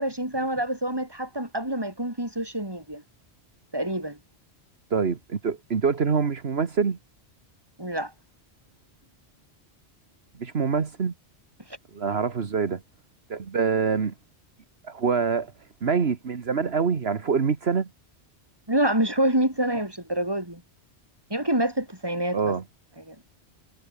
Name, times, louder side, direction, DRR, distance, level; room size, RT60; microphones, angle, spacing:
voice 1, 0.0-3.0 3.7-4.2 7.8-8.1 18.7-20.6 21.3-22.5 23.1-23.2, right 1 dB, 20° right, 4.7 m, -26 dB
voice 2, 4.9-7.0 10.4-11.1 11.9-12.8 13.3-14.1 14.8-15.5 15.8-17.9 22.3-22.6, right 5 dB, 65° right, 1.7 m, -25 dB
omnidirectional pair, 1.1 m